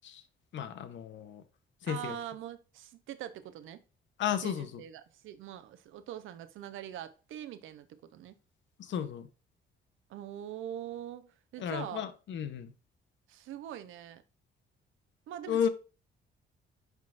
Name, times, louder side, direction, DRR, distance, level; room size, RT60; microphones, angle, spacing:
voice 1, 0.5-1.4 1.8-2.2 4.2-4.8 8.8-9.3 11.6-12.7 15.5-15.7, left 8 dB, 70° left, 0.9 m, -33 dB
voice 2, 1.9-3.8 4.4-8.3 10.1-12.1 13.3-14.2 15.3-15.7, right 11 dB, 85° right, 0.7 m, -43 dB
10.5 x 3.8 x 2.5 m
cardioid pair, 90°, 20 cm